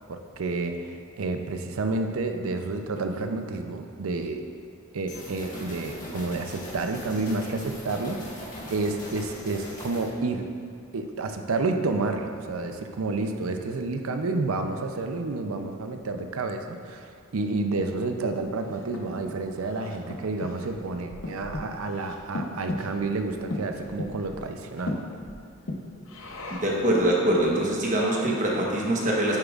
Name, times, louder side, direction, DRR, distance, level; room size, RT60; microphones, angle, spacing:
voice 1, 0.0-4.4 4.9-8.4 8.7-10.5 10.9-25.0, right 3 dB, 75° right, 6 dB, 0.5 m, -30 dB
sound 1, 5.1-10.1, left 1 dB, 35° left, 1.5 m, -41 dB
Breathing, 18.4-26.9, left 1 dB, 65° left, 0.8 m, -37 dB
voice 2, 26.6-29.4, right 1 dB, 35° right, -3 dB, 1.0 m, -23 dB
9.1 x 6.7 x 2.4 m, 2.3 s
head